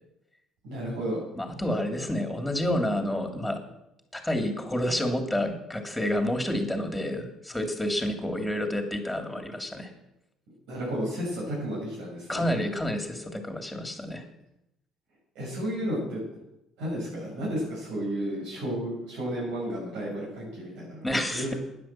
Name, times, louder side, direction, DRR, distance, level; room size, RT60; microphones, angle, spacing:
voice 1, 0.6-1.2 10.7-12.4 15.3-16.2 16.8-21.6, equal, 90° right, -4 dB, 6.7 m, -32 dB
voice 2, 1.4-3.6 4.1-9.9 12.3-14.2 21.0-21.5, left 1 dB, 5° left, 5 dB, 2.6 m, -29 dB
11.5 x 10.0 x 7.5 m, 0.86 s
cardioid pair, 125°, 0 cm